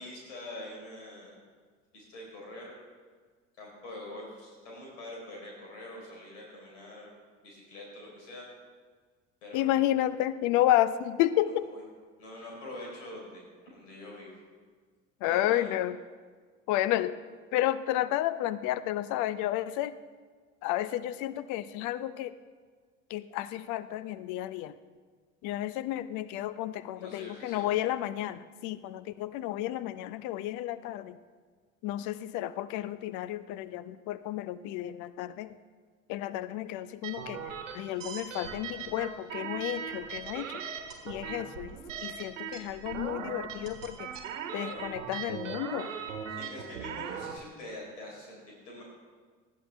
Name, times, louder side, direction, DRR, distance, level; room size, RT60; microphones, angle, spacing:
voice 1, 0.0-1.3 1.9-2.7 3.6-7.1 7.4-8.5 9.4-9.9 11.5-11.8 12.2-14.4 15.2-15.7 27.0-27.7 44.5-44.8 46.3-48.8, left 1 dB, 70° left, -3 dB, 4.1 m, -44 dB
voice 2, 9.5-11.7 15.2-16.0 16.7-17.2 17.5-19.9 20.6-22.3 23.1-24.8 25.4-31.2 31.8-35.6 36.1-40.6 41.0-44.1 44.5-45.9, left 13 dB, 50° left, 16 dB, 0.7 m, -31 dB
sound 1, 37.0-47.4, right 7 dB, 75° right, 1.3 m, -39 dB
19.5 x 12.5 x 3.4 m, 1.5 s
figure-of-eight pair, 60°, 38 cm